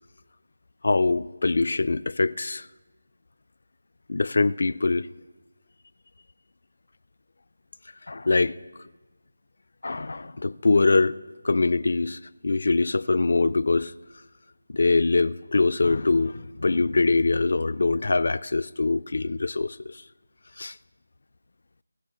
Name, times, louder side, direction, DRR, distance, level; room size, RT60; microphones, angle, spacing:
voice 1, 0.8-2.7 4.1-5.1 8.1-8.6 9.8-11.2 11.4-13.9 14.7-20.0 20.6-20.8, left 3 dB, 60° left, 0.4 m, -23 dB
23.0 x 10.0 x 3.0 m
figure-of-eight pair, 170°, 0 cm